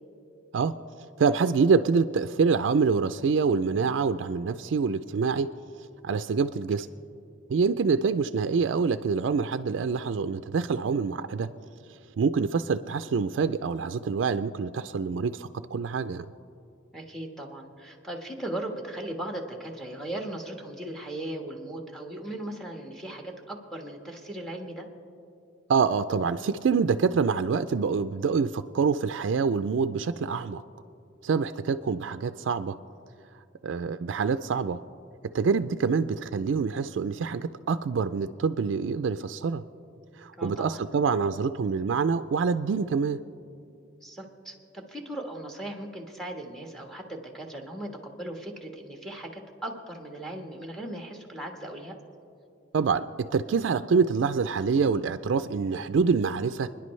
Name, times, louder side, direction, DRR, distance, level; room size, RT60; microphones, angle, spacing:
voice 1, 1.2-5.5 6.0-6.9 7.5-11.5 12.2-16.3 25.7-30.6 31.2-32.8 33.6-34.8 35.3-39.6 40.2-43.2 52.7-53.0 53.3-56.7, right 5 dB, 70° right, 10 dB, 0.4 m, -26 dB
voice 2, 16.9-24.9 40.4-40.8 44.0-52.0, right 1 dB, ahead, 2 dB, 1.4 m, -38 dB
29.5 x 10.5 x 3.2 m, 2.6 s
head